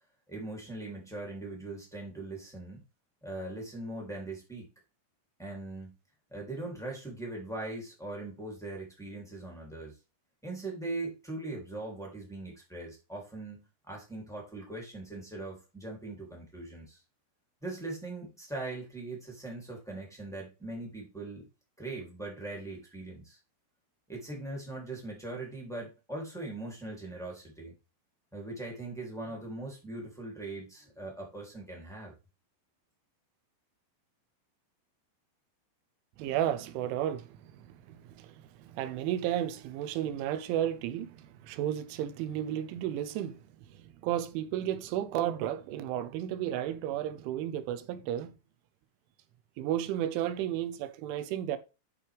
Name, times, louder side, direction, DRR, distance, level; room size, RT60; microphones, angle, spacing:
voice 1, 0.3-2.8 3.2-4.7 5.4-5.9 6.3-10.0 10.4-17.0 17.6-21.5 21.8-23.4 24.1-27.7 28.3-32.1, right 2 dB, 5° left, 0.6 m, -40 dB
voice 2, 36.2-48.4 49.6-51.6, right 11 dB, 80° right, 3.1 m, -33 dB
11.0 x 5.5 x 3.4 m
omnidirectional pair, 5.8 m